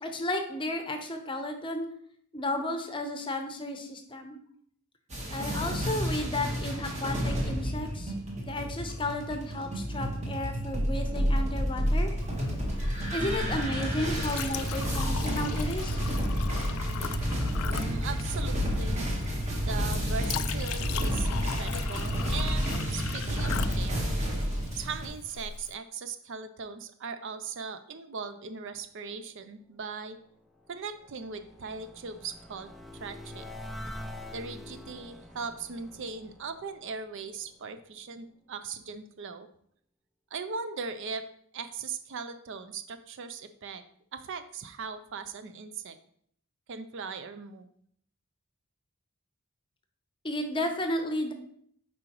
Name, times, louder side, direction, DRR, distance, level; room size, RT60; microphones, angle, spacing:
voice 1, 0.0-1.9 2.3-4.4 5.3-8.1 8.4-12.1 13.1-16.0 50.2-51.3, left 1 dB, 25° left, 5 dB, 0.7 m, -33 dB
sound 1, 5.1-25.1, equal, 30° right, 1.3 m, -30 dB
Chink clink, 12.2-25.8, left 8 dB, 75° left, 0.3 m, -39 dB
voice 2, 17.6-19.1 19.6-24.1 24.8-30.2 30.7-33.4 34.3-39.5 40.3-41.2 41.5-43.8 44.1-46.0 46.7-47.7, right 5 dB, 60° right, 10 dB, 0.5 m, -39 dB
sound 2, 30.3-37.5, left 1 dB, ahead, 0.4 m, -45 dB
7.7 x 4.9 x 3.0 m, 0.65 s
head